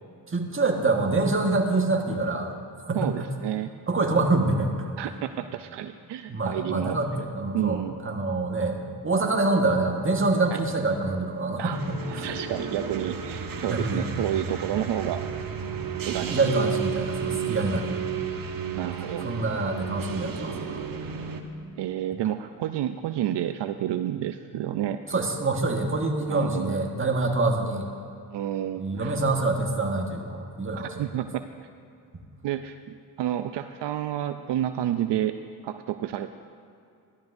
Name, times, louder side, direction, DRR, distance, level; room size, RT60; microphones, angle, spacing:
voice 1, 0.3-2.5 2.9-3.1 3.9-4.9 6.3-12.3 13.7-14.1 16.3-18.0 19.2-20.8 25.1-27.9 28.7-31.0, right 2 dB, 30° right, 2 dB, 1.5 m, -26 dB
voice 2, 2.9-3.7 5.0-7.0 7.5-7.9 10.5-10.6 11.6-11.8 12.1-15.3 16.0-16.4 18.8-19.3 21.8-25.0 26.3-26.8 28.3-29.2 30.8-31.4 32.4-35.4 35.6-36.3, right 11 dB, 80° right, 9 dB, 0.5 m, -30 dB
sound 1, 11.7-21.4, right 7 dB, 55° right, 1.0 m, -33 dB
15.0 x 12.0 x 2.6 m, 2.5 s
cardioid pair, 65°, 41 cm